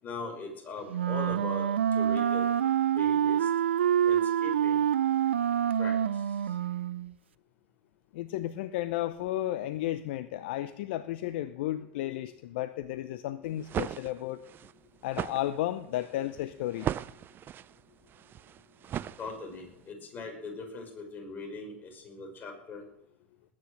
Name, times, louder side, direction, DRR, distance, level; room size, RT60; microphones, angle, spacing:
voice 1, 0.0-1.7 1.9-2.5 3.0-3.5 4.0-4.9 5.8-6.6 19.2-22.8, left 3 dB, 30° left, 2 dB, 5.7 m, -40 dB
Wind instrument woodwind instrument, 0.9-7.1, right 9 dB, 80° right, 0.5 m, -26 dB
voice 2, 8.1-14.4 15.0-16.9, left 14 dB, 65° left, 13 dB, 0.7 m, -33 dB
sound 1, 13.4-19.7, right 10 dB, 35° right, 0.6 m, -38 dB
19.5 x 9.7 x 6.4 m, 0.82 s
hypercardioid pair, 90°, 6 cm